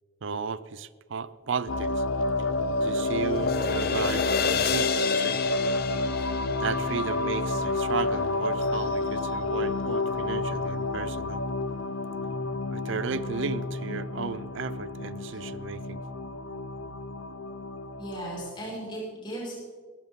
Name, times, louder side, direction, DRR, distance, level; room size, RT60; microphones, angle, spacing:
voice 1, 0.2-2.0 2.4-2.5 2.8-5.4 6.6-11.4 12.7-16.0, right 5 dB, 65° right, 17 dB, 0.5 m, -34 dB
sound 1, 1.7-18.5, left 2 dB, 80° left, 0.8 m, -30 dB
sound 2, 1.9-8.2, left 5 dB, 50° left, 0.8 m, -31 dB
voice 2, 18.0-19.6, right 1 dB, 25° left, -5 dB, 5.6 m, -36 dB
18.5 x 13.5 x 3.7 m, 1.5 s
head